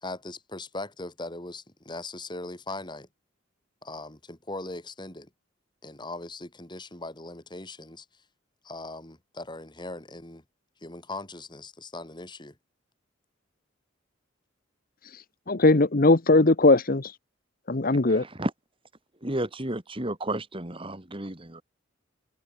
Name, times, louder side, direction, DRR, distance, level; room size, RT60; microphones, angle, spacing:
voice 1, 0.0-3.1 3.8-5.3 5.8-8.1 8.6-10.4 10.8-12.5, left 2 dB, 20° left, 3.7 m, -39 dB
voice 2, 15.5-17.1 17.7-18.2, left 2 dB, 45° left, 1.0 m, -19 dB
voice 3, 18.1-18.5 19.2-21.6, right 1 dB, 25° right, 2.3 m, -32 dB
head